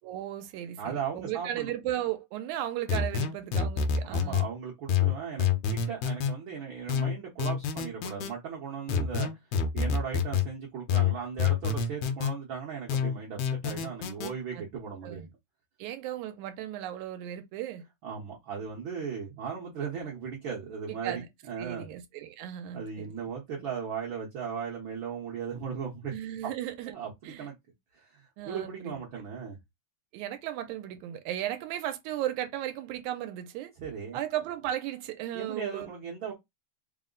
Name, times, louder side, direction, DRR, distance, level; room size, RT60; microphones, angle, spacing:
voice 1, 0.0-4.5 14.5-14.6 15.0-15.3 15.8-17.8 20.9-21.3 21.6-23.1 26.1-26.9 27.2-27.5 28.4-29.2 30.1-33.7 34.1-35.9, right 12 dB, 90° right, 2.0 m, -35 dB
voice 2, 0.8-1.7 4.0-9.3 9.7-15.3 18.0-21.9 22.7-26.1 26.8-27.5 27.9-29.6 33.8-34.2 35.3-36.3, right 7 dB, 60° right, 1.4 m, -37 dB
sound 1, 2.9-4.5 4.9-6.3 6.9-8.3 8.9-10.5 10.9-12.3 12.9-14.3, left 6 dB, 75° left, 1.8 m, -27 dB
4.6 x 2.1 x 3.8 m
omnidirectional pair, 3.3 m